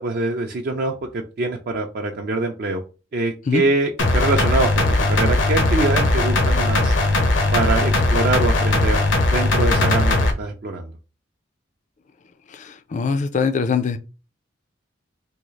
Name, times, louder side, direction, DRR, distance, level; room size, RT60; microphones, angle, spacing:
voice 1, 0.0-2.8 3.1-6.9 7.5-9.0 9.3-10.9, right 3 dB, 55° right, 0.5 m, -24 dB
sound 1, 4.0-10.3, left 2 dB, 80° left, 0.8 m, -19 dB
voice 2, 12.5-14.0, left 5 dB, 40° left, 0.4 m, -22 dB
3.6 x 2.3 x 3.1 m
head